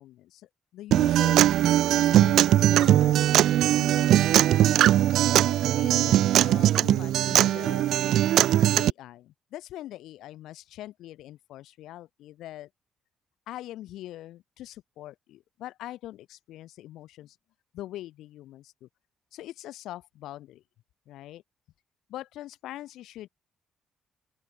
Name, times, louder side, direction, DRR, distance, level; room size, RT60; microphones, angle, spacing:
voice 1, 0.0-1.4 1.9-4.1 5.2-8.3 8.8-12.7 13.5-17.4 17.7-18.9 19.3-20.6 21.1-21.4 22.1-23.3, left 14 dB, 85° left, 6.5 m, -43 dB
Acoustic guitar, 0.9-8.9, right 12 dB, 80° right, 0.5 m, -20 dB
open air
cardioid pair, 90°, 0 cm